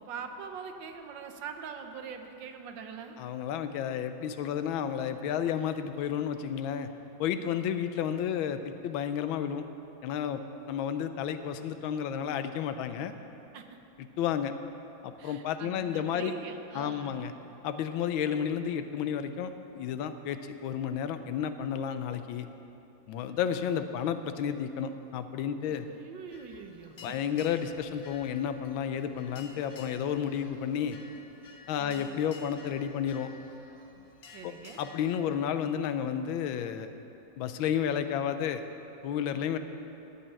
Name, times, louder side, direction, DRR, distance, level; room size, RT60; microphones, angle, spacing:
voice 1, 0.0-3.2 7.3-7.7 13.5-13.8 15.2-17.2 23.2-23.4 25.6-27.2 31.8-32.1 34.3-34.8, right 6 dB, 75° right, 6 dB, 1.4 m, -43 dB
voice 2, 3.2-6.9 7.2-9.6 10.0-10.4 10.7-13.1 14.2-14.5 15.0-16.3 16.7-17.3 17.6-22.5 23.1-25.9 27.0-31.0 31.7-33.3 34.4-34.5 34.8-36.9 37.4-38.6 39.0-39.6, left 8 dB, 85° left, 10 dB, 1.4 m, -31 dB
sound 1, 26.3-35.2, left 4 dB, 55° left, 0.7 m, -52 dB
13.0 x 5.5 x 9.0 m, 3.0 s
omnidirectional pair, 2.1 m